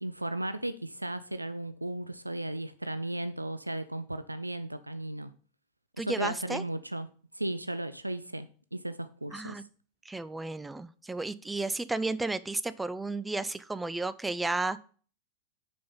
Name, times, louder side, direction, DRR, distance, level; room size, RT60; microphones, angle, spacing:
voice 1, 0.0-5.3 6.0-7.1 7.3-9.6, right 1 dB, 85° right, 0.4 m, -35 dB
voice 2, 6.0-6.6 9.3-9.6 10.1-14.8, right 2 dB, 10° right, 0.4 m, -33 dB
6.8 x 5.3 x 5.3 m
figure-of-eight pair, 90°, 0 cm